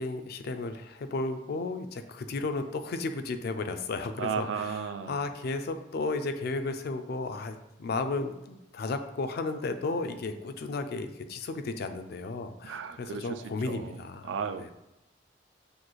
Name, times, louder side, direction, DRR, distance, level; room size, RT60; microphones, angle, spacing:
voice 1, 0.0-4.7 5.1-14.3, left 3 dB, 60° left, 8 dB, 0.4 m, -34 dB
voice 2, 4.2-5.2 12.6-14.7, right 6 dB, 80° right, 10 dB, 0.3 m, -35 dB
6.2 x 2.3 x 3.1 m, 0.94 s
head